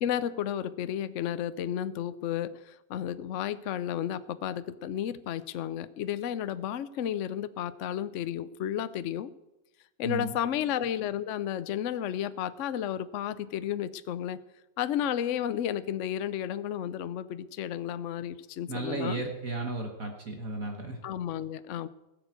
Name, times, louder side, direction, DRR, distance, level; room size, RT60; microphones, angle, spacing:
voice 1, 0.0-9.3 10.0-14.4 14.8-19.2 21.0-21.9, left 10 dB, 65° left, 14 dB, 0.7 m, -32 dB
voice 2, 10.0-10.3 18.7-21.0, right 2 dB, 50° right, 2 dB, 1.7 m, -34 dB
16.0 x 7.3 x 8.1 m, 0.96 s
omnidirectional pair, 2.0 m